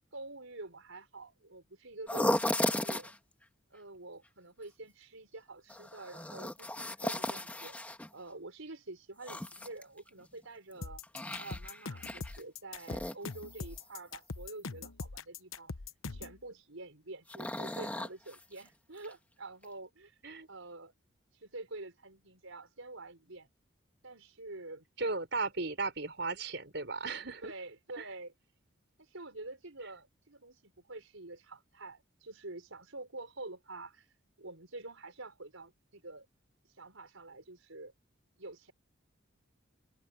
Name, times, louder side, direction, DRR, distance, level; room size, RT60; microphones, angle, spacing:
voice 1, 0.1-3.1 3.7-7.7 8.1-11.0 11.4-15.7 16.1-20.2 20.5-20.9 21.4-23.5 24.0-24.9 27.4-28.3 29.0-34.1 34.4-36.3 36.8-37.9 38.4-38.7, right 2 dB, 85° right, 5.2 m, -47 dB
sound 1, 2.1-3.2 5.7-8.1 9.2-10.2 10.7-12.4 12.8-13.8 17.3-18.7 19.0-19.1 19.6-19.7, left 1 dB, 5° left, 1.7 m, -35 dB
sound 2, 10.8-16.4, left 4 dB, 85° left, 1.0 m, -42 dB
voice 2, 25.0-27.5 28.0-28.1, right 3 dB, 60° right, 5.1 m, -35 dB
head